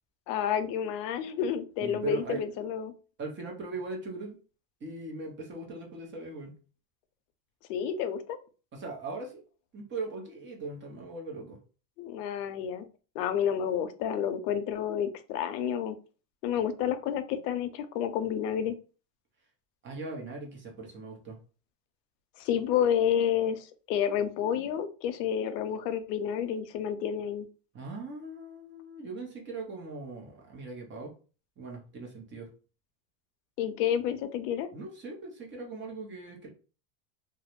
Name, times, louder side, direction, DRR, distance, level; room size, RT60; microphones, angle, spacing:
voice 1, 0.3-2.9 7.7-8.4 12.0-12.9 13.1-16.0 16.4-18.8 22.4-27.5 33.6-34.7, left 9 dB, 85° left, 0.6 m, -30 dB
voice 2, 1.8-2.4 3.2-4.4 4.8-6.5 8.7-9.4 9.7-11.6 19.8-21.4 27.7-31.1 31.6-32.5 34.7-36.5, right 3 dB, 25° right, 0.6 m, -39 dB
2.3 x 2.0 x 2.9 m
supercardioid pair, 130°, 48 cm